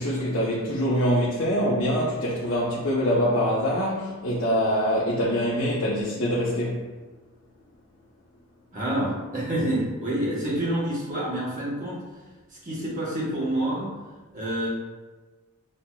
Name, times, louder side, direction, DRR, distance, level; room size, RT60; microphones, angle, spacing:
voice 1, 0.0-6.8, equal, 65° left, -7 dB, 0.7 m, -24 dB
voice 2, 8.7-12.0 12.6-14.0 14.3-14.7, right 1 dB, 35° right, -5 dB, 1.1 m, -27 dB
6.3 x 2.8 x 2.3 m, 1.3 s
head